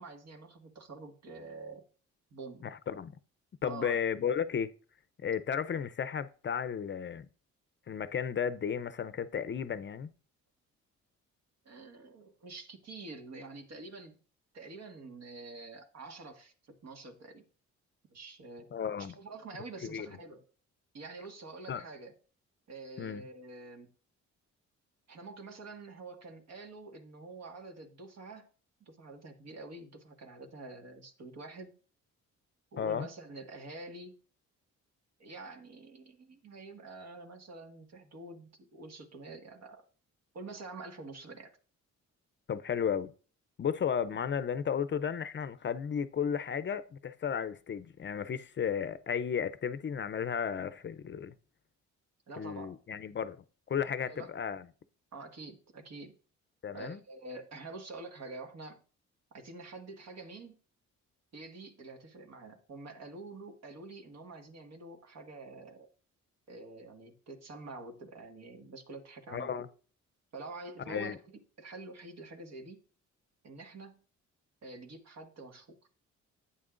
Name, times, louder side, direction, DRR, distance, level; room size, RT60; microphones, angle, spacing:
voice 1, 0.0-1.9 2.3-2.7 3.6-4.0 11.7-14.1 14.5-17.4 18.1-18.7 19.0-20.4 20.9-22.1 22.7-23.9 25.1-28.5 28.8-31.8 32.7-34.2 35.2-39.8 40.3-41.5 44.1-44.2 52.3-52.8 54.1-54.3 55.1-56.2 56.7-58.8 59.3-60.6 61.3-65.9 66.5-69.5 70.3-72.8 73.4-74.0 74.6-75.8, right 3 dB, 60° right, 1.8 m, -47 dB
voice 2, 2.6-3.1 3.6-4.7 5.2-7.3 7.9-10.1 18.7-19.1 19.8-20.1 21.7-21.8 23.0-23.2 32.8-33.1 42.5-43.1 43.6-51.3 52.4-54.6 56.6-57.0 69.3-69.7 70.9-71.2, left 7 dB, 40° left, 0.6 m, -34 dB
11.0 x 8.6 x 2.5 m
cardioid pair, 90°, 30 cm